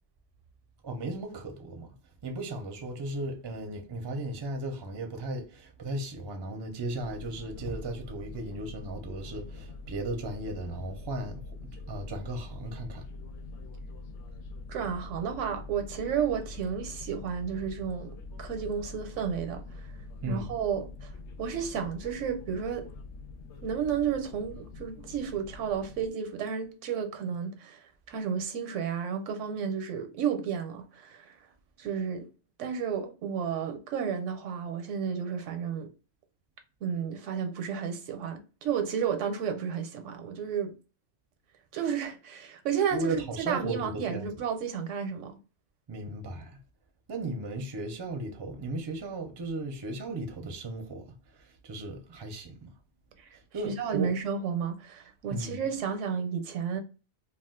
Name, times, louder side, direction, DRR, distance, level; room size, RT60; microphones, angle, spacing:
voice 1, 0.8-2.0 2.2-13.1 20.2-20.5 42.9-44.3 45.9-46.6 47.1-52.7 53.3-54.1 55.3-55.6, right 2 dB, 40° right, 0.3 m, -36 dB
sound 1, 7.0-26.1, left 3 dB, 70° left, 0.9 m, -44 dB
voice 2, 14.7-19.8 20.3-21.1 21.4-22.9 23.6-27.8 28.1-31.3 31.8-32.3 32.6-35.9 36.8-40.7 41.7-45.4 53.2-53.3 53.6-56.8, right 7 dB, 85° right, 0.9 m, -32 dB
2.3 x 2.3 x 3.5 m
omnidirectional pair, 1.3 m